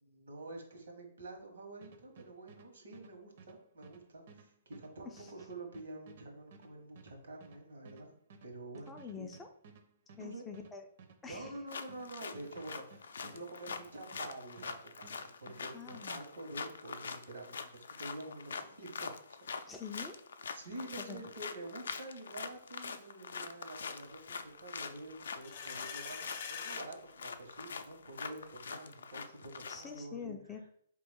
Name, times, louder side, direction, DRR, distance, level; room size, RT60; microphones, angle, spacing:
voice 1, 0.0-8.1 8.4-9.3 10.2-10.4 11.2-19.7 20.5-30.3, right 2 dB, 85° right, 2 dB, 1.5 m, -48 dB
sound 1, 1.8-14.8 15.0-16.1, right 5 dB, 50° right, 0.6 m, -57 dB
voice 2, 8.9-9.5 10.2-10.8 11.2-11.5 15.7-16.2 19.7-20.2 21.1-21.2 29.7-30.7, left 6 dB, 10° left, 4 dB, 0.3 m, -46 dB
sound 2, 11.7-30.0, left 5 dB, 80° left, 0.4 m, -44 dB
sound 3, 25.2-26.8, left 6 dB, 50° left, 0.7 m, -43 dB
3.9 x 3.0 x 3.5 m, 0.63 s
hypercardioid pair, 165°, 0 cm